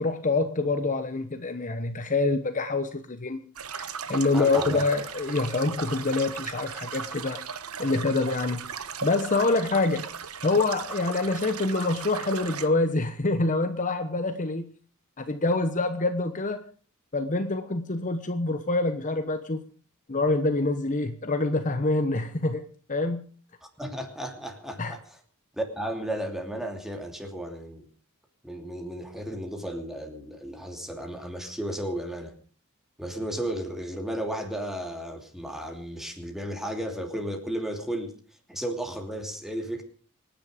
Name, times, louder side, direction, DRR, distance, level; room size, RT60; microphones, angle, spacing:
voice 1, 0.0-3.4 3.8-7.4 7.8-8.6 9.0-10.1 10.4-14.7 15.2-16.7 17.1-19.6 20.1-23.2 24.8-24.9, left 3 dB, 35° left, 8 dB, 1.0 m, -26 dB
sound 1, 3.5-12.7, right 6 dB, 80° right, 1.2 m, -37 dB
voice 2, 4.3-4.8 23.6-25.2 25.5-27.9 28.4-32.3 33.0-38.1 38.5-39.8, right 1 dB, ahead, 4 dB, 2.9 m, -34 dB
26.0 x 10.5 x 5.1 m, 0.42 s
head